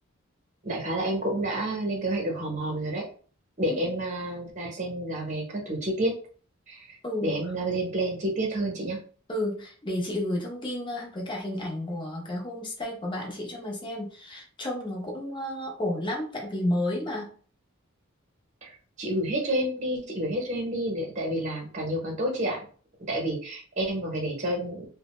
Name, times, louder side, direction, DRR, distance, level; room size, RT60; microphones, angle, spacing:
voice 1, 0.6-3.0 3.6-6.1 6.7-9.0 18.6-22.6 23.1-24.8, right 1 dB, 35° right, -1 dB, 0.8 m, -29 dB
voice 2, 7.0-7.4 9.3-17.3, left 1 dB, 20° left, -1 dB, 0.7 m, -31 dB
2.6 x 2.1 x 3.1 m, 0.42 s
head